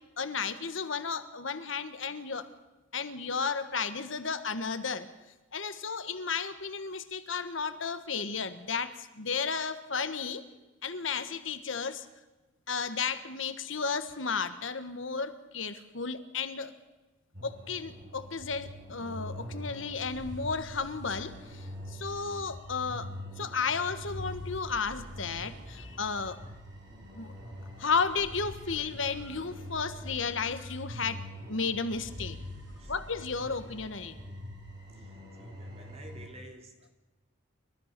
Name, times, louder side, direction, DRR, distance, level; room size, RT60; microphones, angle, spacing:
voice 1, 0.2-2.5 2.9-5.1 5.5-10.4 10.8-12.1 12.7-16.7 17.4-26.4 27.1-27.3 27.8-32.4 32.9-34.1, left 5 dB, 70° left, 11 dB, 1.4 m, -33 dB
sound 1, 17.3-36.3, left 1 dB, 60° right, 6.3 m, -44 dB
voice 2, 35.4-36.7, right 1 dB, 30° right, 3 dB, 3.3 m, -50 dB
29.0 x 13.5 x 6.8 m, 1.1 s
head